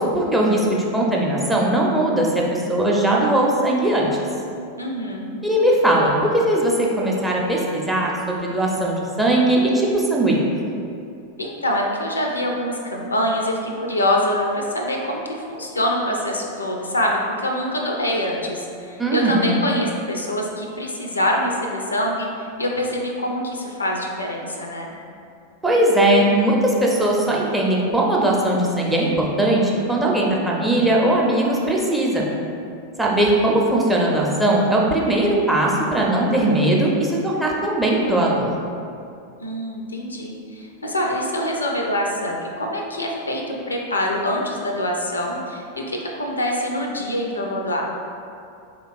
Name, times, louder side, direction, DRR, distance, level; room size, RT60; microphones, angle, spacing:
voice 1, 0.0-4.1 5.4-10.4 19.0-19.5 25.6-32.2 33.0-38.5, right 1 dB, 5° right, -3 dB, 0.5 m, -19 dB
voice 2, 4.8-5.3 11.4-24.9 39.4-47.8, left 1 dB, 80° left, 0 dB, 0.4 m, -25 dB
3.9 x 2.8 x 2.5 m, 2.5 s
figure-of-eight pair, 90°, 0 cm